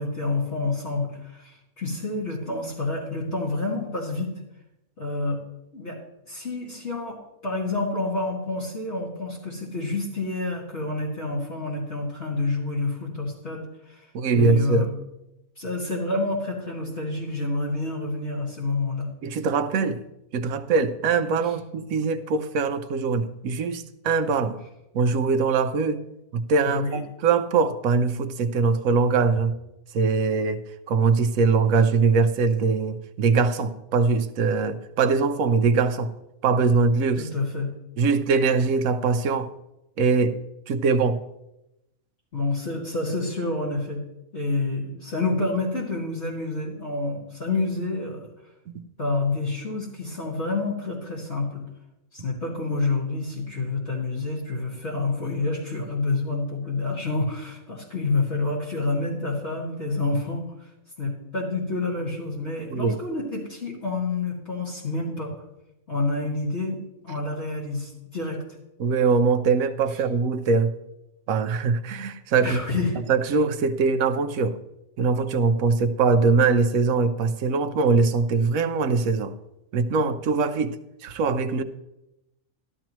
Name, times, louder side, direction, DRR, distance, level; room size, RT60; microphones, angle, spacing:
voice 1, 0.0-4.3 5.0-5.4 5.7-6.0 6.3-7.2 7.4-14.1 14.3-14.9 15.6-19.1 26.6-27.0 37.2-37.7 42.3-44.0 44.3-48.3 49.0-51.6 52.1-60.7 61.0-65.4 65.9-66.8 67.0-68.4 72.4-73.0, left 3 dB, 50° left, 2.3 m, -28 dB
voice 2, 14.1-14.9 19.2-20.0 20.3-24.6 24.9-26.0 26.3-29.5 29.9-30.6 30.9-36.1 36.4-37.2 38.0-39.5 40.0-40.4 40.7-41.2 62.7-63.0 68.8-70.7 71.3-72.6 73.1-74.6 75.0-79.3 79.7-80.8 81.0-81.6, right 4 dB, 70° right, 1.1 m, -22 dB
13.5 x 12.5 x 3.0 m
omnidirectional pair, 1.5 m